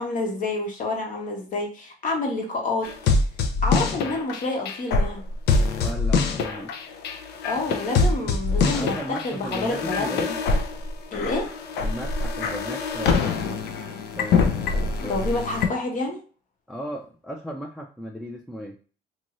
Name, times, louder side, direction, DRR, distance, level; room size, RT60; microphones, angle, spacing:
voice 1, 0.0-2.9 3.6-5.2 7.4-10.2 11.1-11.5 15.0-16.2, left 2 dB, 50° left, 1 dB, 1.0 m, -28 dB
sound 1, 2.8-15.7, left 4 dB, 75° left, 0.5 m, -24 dB
voice 2, 5.8-6.7 7.7-10.4 11.8-13.4 14.2-15.2 16.7-18.8, equal, ahead, 0 dB, 0.4 m, -36 dB
2.7 x 2.6 x 2.9 m, 0.38 s
cardioid pair, 110°, 17 cm